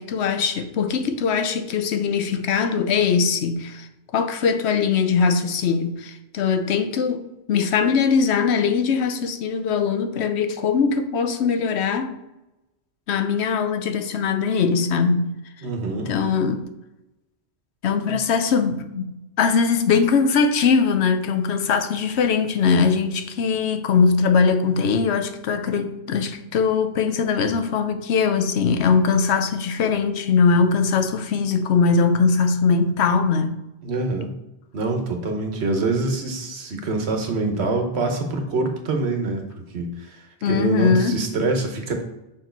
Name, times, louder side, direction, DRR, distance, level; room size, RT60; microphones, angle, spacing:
voice 1, 0.0-3.9 4.1-12.2 13.1-15.3 16.1-16.7 17.8-33.6 40.4-41.3, left 5 dB, 90° left, 1.0 m, -21 dB
voice 2, 15.6-16.1 18.1-18.2 33.8-34.4 34.7-39.4 39.7-40.2 40.5-41.9, right 3 dB, 85° right, 1.3 m, -25 dB
6.1 x 4.6 x 4.4 m
omnidirectional pair, 1.1 m